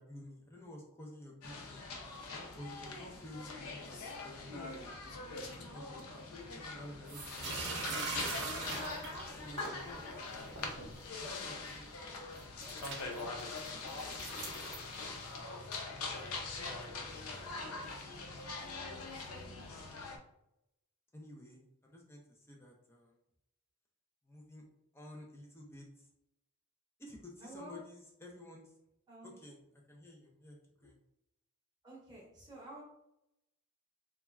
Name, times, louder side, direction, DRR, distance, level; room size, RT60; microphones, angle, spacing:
voice 1, 0.0-2.0 2.6-6.0 6.5-8.7 9.4-10.5 11.2-11.9 21.1-23.2 24.3-24.6 24.9-26.1 27.0-28.7 29.2-31.0, left 1 dB, 10° left, -1 dB, 0.4 m, -52 dB
sound 1, 1.4-20.2, left 3 dB, 80° left, 0.5 m, -43 dB
sound 2, 7.1-9.8 10.3-11.0 11.7-11.8 12.3-15.4, right 3 dB, 55° right, 0.7 m, -42 dB
voice 2, 27.4-27.8 29.1-29.4 31.8-32.8, right 1 dB, 20° right, -6 dB, 0.9 m, -50 dB
3.1 x 2.3 x 2.2 m, 0.84 s
head